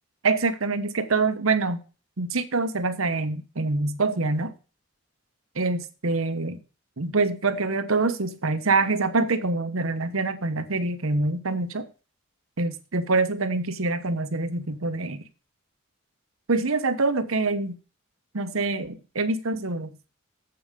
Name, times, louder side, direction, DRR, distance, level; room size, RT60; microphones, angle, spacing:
voice 1, 0.2-1.8 2.2-4.5 5.5-6.6 7.0-11.9 12.6-15.2 16.5-17.8 18.3-20.0, right 3 dB, 90° right, 1.1 m, -25 dB
7.9 x 5.4 x 6.7 m
head